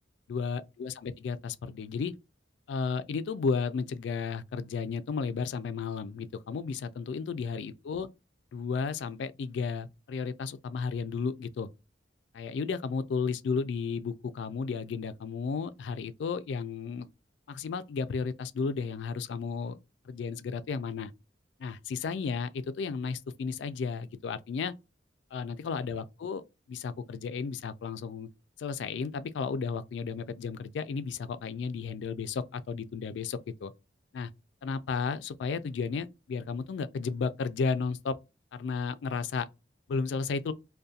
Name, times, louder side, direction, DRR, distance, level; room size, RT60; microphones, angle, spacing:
voice 1, 0.3-2.1 2.7-8.1 8.5-11.7 12.3-17.1 17.5-19.8 20.1-21.1 21.6-24.7 25.3-28.3 28.6-33.7 34.1-34.3 34.6-38.2 38.5-39.5 39.9-40.5, left 5 dB, 75° left, 0.3 m, -33 dB
2.4 x 2.2 x 2.6 m
head